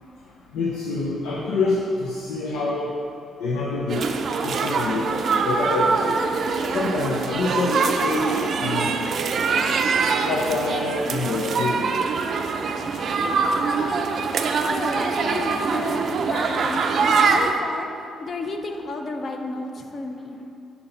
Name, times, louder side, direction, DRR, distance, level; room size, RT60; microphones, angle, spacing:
voice 1, 0.5-3.0 3.4-4.1 4.4-5.2 5.4-6.3 6.7-9.0 10.2-12.0, left 3 dB, 90° left, -3 dB, 0.6 m, -26 dB
sound 1, 3.9-17.5, right 4 dB, 60° right, 0.4 m, -23 dB
voice 2, 14.6-20.4, left 2 dB, 45° left, 4 dB, 0.6 m, -32 dB
8.4 x 2.8 x 5.3 m, 2.6 s
cardioid pair, 90°, 0 cm